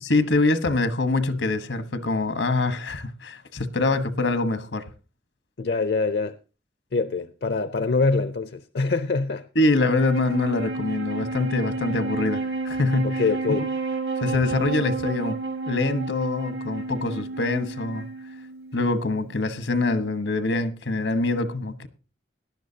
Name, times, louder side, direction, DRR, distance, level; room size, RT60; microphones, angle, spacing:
voice 1, 0.0-4.9 9.5-13.2 14.2-15.4 15.7-18.1 18.7-21.9, left 2 dB, 85° left, 1.2 m, -24 dB
voice 2, 5.6-6.3 6.9-9.5 13.0-13.7, left 4 dB, 60° left, 0.5 m, -24 dB
Wind instrument woodwind instrument, 9.8-19.3, right 3 dB, 60° right, 1.1 m, -31 dB
18.0 x 11.5 x 2.8 m
head